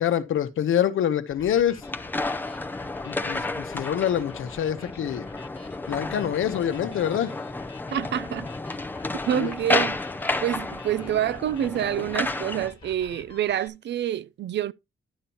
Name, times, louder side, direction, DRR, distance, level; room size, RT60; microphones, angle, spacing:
voice 1, 0.0-1.8 3.0-5.3 5.9-7.4 9.3-9.5, left 9 dB, 70° left, 0.9 m, -26 dB
sound 1, 1.3-13.7, left 4 dB, 25° left, 1.6 m, -47 dB
sound 2, 1.8-12.7, left 2 dB, 10° left, 0.5 m, -31 dB
voice 2, 7.9-8.5 9.3-10.0 10.4-14.7, right 10 dB, 55° right, 0.4 m, -27 dB
11.0 x 7.0 x 2.9 m
wide cardioid pair, 180°, 21 cm